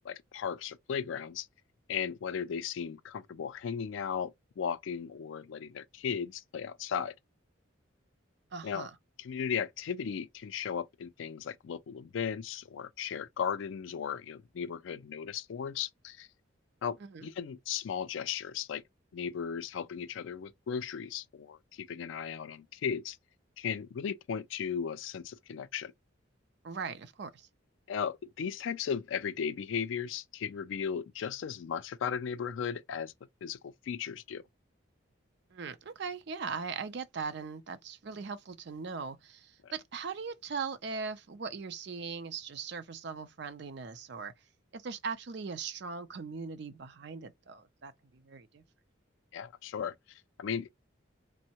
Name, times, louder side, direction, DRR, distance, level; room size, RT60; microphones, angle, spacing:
voice 1, 0.0-1.5 1.9-7.1 8.6-8.9 9.2-16.3 16.8-18.8 19.1-23.2 23.6-25.9 27.9-33.1 33.4-34.4 39.6-39.7 49.3-50.7, left 7 dB, 70° left, 0.3 m, -36 dB
voice 2, 8.5-8.9 17.1-17.3 26.6-27.5 35.5-44.3 44.7-48.6, right 5 dB, 55° right, 0.5 m, -40 dB
3.4 x 2.1 x 2.8 m
head